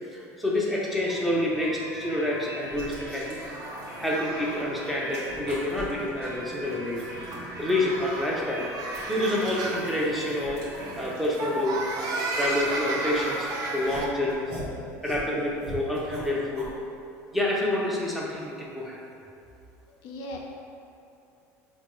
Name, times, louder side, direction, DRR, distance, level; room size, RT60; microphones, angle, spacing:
voice 1, 0.1-3.4 4.0-7.0 7.6-8.6 9.1-10.6 11.0-11.8 12.3-14.5 15.0-16.7 17.3-19.0, left 1 dB, ahead, -5 dB, 0.6 m, -28 dB
sound 1, 1.1-14.7, right 1 dB, 30° right, 1.0 m, -43 dB
sound 2, 2.4-4.6 4.9-7.2 7.6-13.3 13.8-16.8, equal, 85° right, 0.8 m, -43 dB
sound 3, 3.2-14.1, right 2 dB, 55° right, 0.4 m, -34 dB
voice 2, 19.9-20.4, left 1 dB, 60° left, 0 dB, 0.4 m, -38 dB
3.5 x 2.2 x 3.0 m, 2.6 s
supercardioid pair, 90°, 8 cm